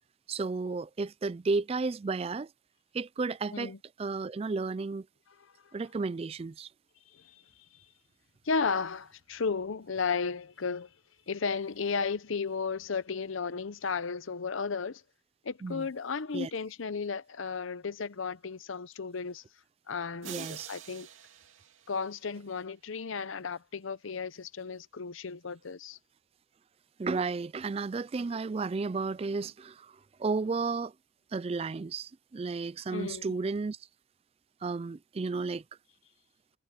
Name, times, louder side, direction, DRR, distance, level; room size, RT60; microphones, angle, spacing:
voice 1, 0.3-2.5 2.9-3.7 4.0-5.1 5.7-6.7 15.6-15.9 16.3-16.5 20.3-20.7 27.0-30.9 31.3-33.8 34.6-35.6, right 4 dB, 30° right, 0.3 m, -33 dB
voice 2, 8.4-10.9 11.3-15.0 15.4-19.4 19.9-21.1 21.9-26.0 32.9-33.3, left 5 dB, 80° left, 0.7 m, -34 dB
sound 1, 20.2-22.6, right 10 dB, 80° right, 2.5 m, -47 dB
head